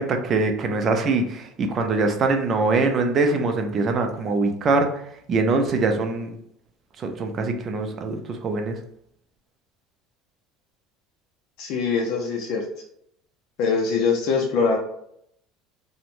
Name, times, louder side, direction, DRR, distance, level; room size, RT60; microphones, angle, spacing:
voice 1, 0.0-5.0 5.3-6.3 7.0-8.8, right 3 dB, 30° right, 5 dB, 0.4 m, -23 dB
voice 2, 11.6-12.6 13.6-14.8, left 5 dB, 55° left, 0 dB, 0.4 m, -23 dB
2.9 x 2.1 x 2.5 m, 0.72 s
cardioid pair, 160°, 0 cm